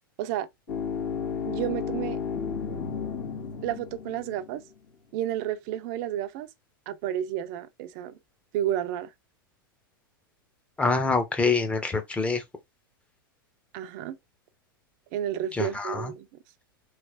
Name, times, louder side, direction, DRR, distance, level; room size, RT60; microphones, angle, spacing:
sound 1, 0.7-4.6, left 6 dB, 75° left, 1.5 m, -33 dB
voice 1, 1.5-2.2 3.6-4.6 5.1-6.5 6.9-8.2 8.5-9.1 13.7-14.2 15.1-16.3, right 11 dB, 50° right, 0.5 m, -31 dB
voice 2, 10.8-12.4 15.5-16.1, left 4 dB, 10° left, 0.8 m, -25 dB
3.2 x 2.8 x 2.5 m
hypercardioid pair, 105°, 12 cm